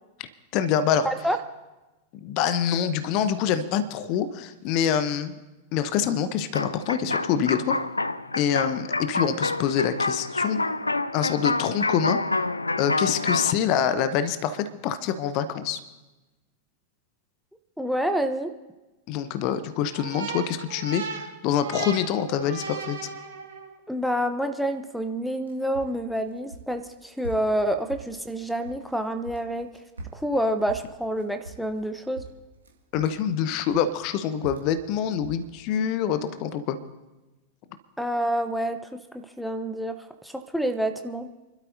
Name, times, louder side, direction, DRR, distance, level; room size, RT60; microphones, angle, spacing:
voice 1, 0.2-1.1 2.2-5.3 5.7-7.8 8.3-10.6 11.1-12.2 12.8-15.8 19.1-23.1 32.9-36.8, left 8 dB, 40° left, 12 dB, 0.8 m, -26 dB
voice 2, 1.0-1.4 17.8-18.5 23.9-29.7 30.1-32.2 38.0-40.0 40.2-41.3, right 1 dB, ahead, 9 dB, 0.8 m, -28 dB
sound 1, 6.5-13.5, left 2 dB, 80° left, 0.3 m, -27 dB
sound 2, 19.9-23.8, right 5 dB, 55° right, 5.4 m, -36 dB
sound 3, 25.3-28.9 29.2-31.9 32.2-33.3 33.7-35.8, right 2 dB, 75° right, 1.8 m, -42 dB
28.5 x 12.5 x 2.7 m, 1.1 s
figure-of-eight pair, 90°, 0 cm